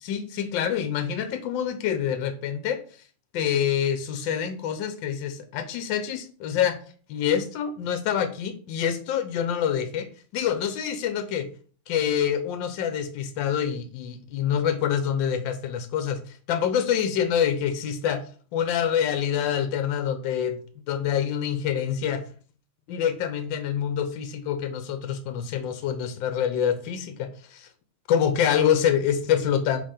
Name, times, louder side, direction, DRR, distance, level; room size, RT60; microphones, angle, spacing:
voice 1, 0.0-2.8 3.3-6.8 7.1-10.1 10.3-11.5 11.9-18.2 18.5-20.6 20.9-22.2 22.9-27.7 28.1-29.8, left 8 dB, 80° left, 9 dB, 1.4 m, -26 dB
5.3 x 3.3 x 5.5 m, 0.44 s
omnidirectional pair, 2.0 m